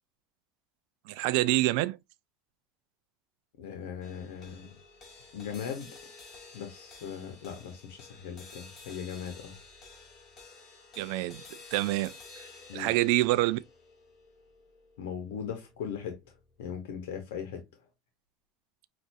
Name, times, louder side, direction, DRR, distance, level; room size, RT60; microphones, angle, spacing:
voice 1, 1.1-2.0 11.0-11.4 11.7-12.1 12.7-13.6, right 18 dB, 70° right, 0.4 m, -26 dB
voice 2, 3.6-4.8 5.3-6.0 6.5-9.6 12.7-12.9 15.0-16.2 16.6-17.6, left 7 dB, 85° left, 1.0 m, -39 dB
sound 1, 4.0-16.5, left 4 dB, 40° left, 2.2 m, -52 dB
6.0 x 2.6 x 2.6 m
supercardioid pair, 120°, 0 cm